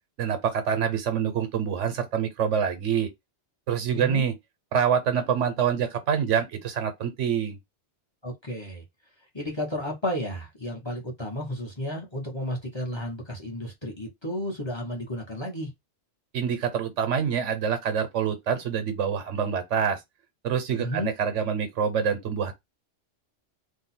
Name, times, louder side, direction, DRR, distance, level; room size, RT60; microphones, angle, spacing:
voice 1, 0.2-3.1 3.7-4.3 4.7-7.6 16.3-20.0 20.4-22.5, right 7 dB, 80° right, 1.1 m, -26 dB
voice 2, 8.2-8.8 9.3-15.7 20.8-21.1, left 1 dB, 25° left, 0.9 m, -32 dB
2.7 x 2.3 x 4.1 m
omnidirectional pair, 1.2 m